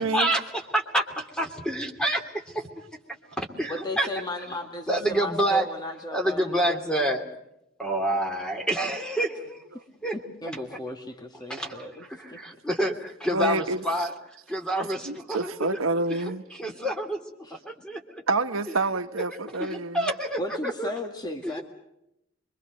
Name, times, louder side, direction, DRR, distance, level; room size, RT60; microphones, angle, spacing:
voice 1, 0.0-2.7 3.4-4.1 4.9-5.7 6.1-7.2 7.8-9.7 10.0-10.1 11.5-11.7 12.2-14.1 14.5-15.5 16.1-17.2 17.6-18.0 19.3-20.9 21.4-21.6, right 1 dB, 5° left, 2.9 m, -28 dB
voice 2, 3.7-7.1 10.1-12.4 17.4-17.6 20.4-21.6, left 1 dB, 20° left, 2.0 m, -36 dB
voice 3, 13.3-14.1 15.0-16.4 18.3-20.1, right 3 dB, 80° right, 1.3 m, -28 dB
25.5 x 23.5 x 6.5 m
head